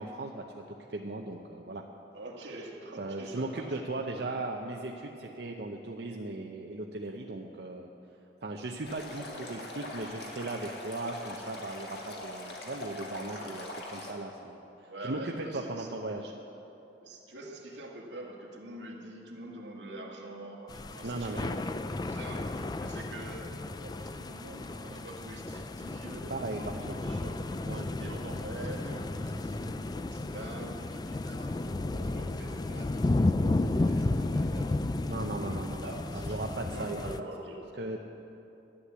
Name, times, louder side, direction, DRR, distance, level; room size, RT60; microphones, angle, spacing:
voice 1, 0.0-1.8 3.0-7.9 8.4-13.6 13.9-16.3 21.0-21.6 26.3-27.0 27.7-27.9 35.1-35.8 36.1-37.1 37.8-38.0, right 2 dB, 65° right, 1 dB, 0.7 m, -37 dB
voice 2, 2.1-3.8 4.1-4.4 13.2-13.8 14.9-15.9 17.0-21.8 22.1-36.4 36.7-37.6, right 1 dB, 85° right, -1 dB, 1.9 m, -45 dB
Stream, 8.9-14.1, left 1 dB, 65° left, 1.8 m, -42 dB
sound 1, 20.7-37.2, left 2 dB, 20° left, 0.3 m, -33 dB
11.5 x 9.9 x 8.1 m, 3.0 s
head